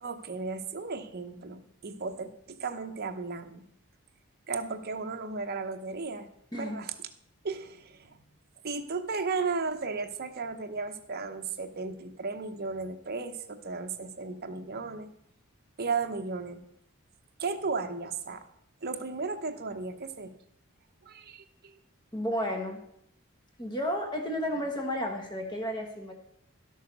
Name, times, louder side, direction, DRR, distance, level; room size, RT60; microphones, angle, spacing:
voice 1, 0.0-3.6 4.5-7.1 7.4-8.2 8.6-15.1 15.8-16.6 17.4-18.4 18.8-20.3 21.0-21.8, right 4 dB, 45° right, 6 dB, 0.8 m, -35 dB
voice 2, 22.1-22.8 23.6-26.1, equal, 20° left, 3 dB, 1.2 m, -32 dB
12.5 x 6.5 x 5.2 m, 0.74 s
head